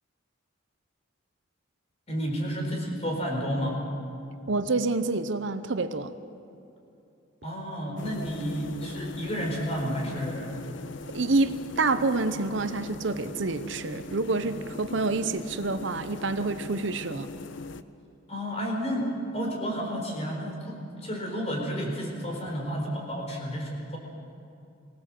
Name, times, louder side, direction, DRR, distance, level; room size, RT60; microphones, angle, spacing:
voice 1, 2.1-3.8 7.4-10.5 18.3-24.0, equal, 30° left, 0 dB, 4.3 m, -31 dB
voice 2, 4.5-6.1 11.1-17.3, right 3 dB, 65° right, 10 dB, 0.8 m, -27 dB
sound 1, 8.0-17.8, left 3 dB, 60° left, 0.7 m, -40 dB
23.5 x 18.0 x 7.6 m, 2.7 s
head